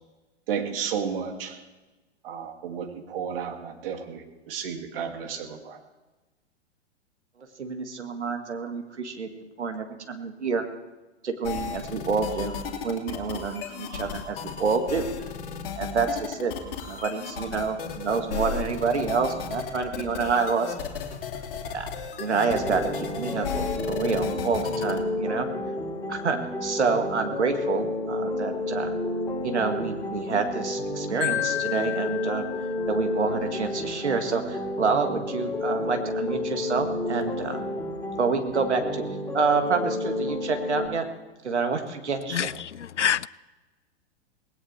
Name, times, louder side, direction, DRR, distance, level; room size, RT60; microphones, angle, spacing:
voice 1, 0.5-1.6 2.2-5.8, right 7 dB, 55° right, 2.3 m, -32 dB
voice 2, 7.6-9.3 9.6-10.6 11.2-12.5 12.8-15.0 15.8-20.7 21.7-21.9 22.2-25.5 26.1-28.9 29.4-32.5 32.9-37.7 38.2-39.0 39.3-41.1 41.4-42.5, right 5 dB, 75° right, 1.9 m, -28 dB
sound 1, 11.4-25.0, left 6 dB, 55° left, 2.5 m, -34 dB
sound 2, 22.5-40.9, left 2 dB, 10° left, 3.4 m, -31 dB
Marimba xylophone, 31.2-33.3, left 16 dB, 35° left, 2.9 m, -31 dB
voice 3, 42.3-43.3, left 9 dB, 85° left, 0.5 m, -27 dB
19.5 x 17.0 x 3.3 m
figure-of-eight pair, 105°, 34 cm